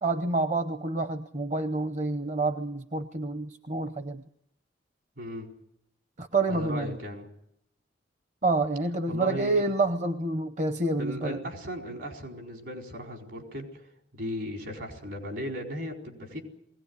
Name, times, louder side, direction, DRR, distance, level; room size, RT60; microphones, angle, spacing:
voice 1, 0.0-4.2 6.2-7.0 8.4-11.4, right 3 dB, 40° right, 8 dB, 0.8 m, -28 dB
voice 2, 5.2-5.5 6.5-7.3 9.1-9.6 11.0-13.9 14.1-16.4, equal, 70° right, 2 dB, 4.6 m, -36 dB
21.0 x 17.5 x 9.6 m, 0.77 s
head